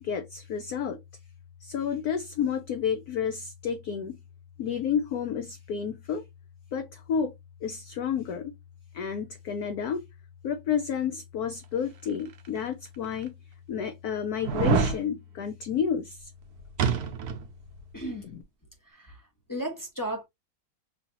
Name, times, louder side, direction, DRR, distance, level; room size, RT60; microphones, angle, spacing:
voice 1, 0.0-1.0 1.6-4.2 4.6-6.2 6.7-7.3 7.6-8.5 8.9-10.0 10.4-13.3 13.7-16.3, left 7 dB, 70° left, 0.9 m, -30 dB
sound 1, 12.4-12.5 13.2-13.3 14.4-15.0 16.8-17.5 17.8-17.9, right 6 dB, 65° right, 1.1 m, -25 dB
voice 2, 17.9-18.3 18.8-20.2, right 1 dB, 20° left, 0.6 m, -35 dB
5.7 x 2.7 x 2.8 m
omnidirectional pair, 2.2 m